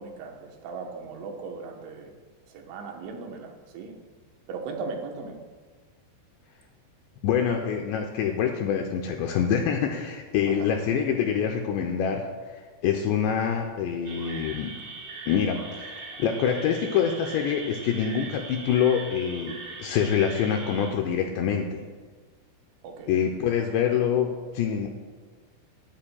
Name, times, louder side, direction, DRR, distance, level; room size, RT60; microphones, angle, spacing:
voice 1, 0.0-2.1 2.5-4.0 4.5-5.4 10.5-10.7 22.8-23.2, right 4 dB, 80° right, 2 dB, 3.4 m, -38 dB
voice 2, 7.2-12.3 12.5-14.8 15.3-15.9 16.2-21.8 23.1-24.9, left 8 dB, 90° left, 2 dB, 2.6 m, -25 dB
sound 1, 14.0-20.9, right 4 dB, 60° right, 2.8 m, -40 dB
20.5 x 9.9 x 2.3 m, 1.4 s
omnidirectional pair, 5.7 m